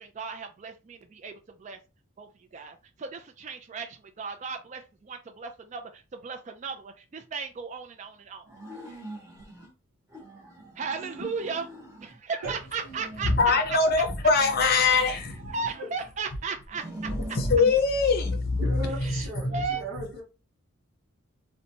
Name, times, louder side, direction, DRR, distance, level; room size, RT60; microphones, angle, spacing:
voice 1, 0.0-1.3 1.6-1.8 2.2-2.3 2.5-8.6 10.8-11.6 12.0-13.3 14.9-15.2 15.5-17.1 19.0-19.8, right 5 dB, 35° right, 0.3 m, -36 dB
sound 1, 8.5-9.7 10.1-12.2 12.6-13.8 14.2-16.1 16.6-17.8, right 1 dB, 15° right, 0.8 m, -44 dB
voice 2, 13.2-15.6 17.1-19.6, left 4 dB, 45° left, 0.6 m, -23 dB
voice 3, 18.6-20.2, right 1 dB, 70° right, 0.8 m, -37 dB
2.9 x 2.1 x 2.7 m
head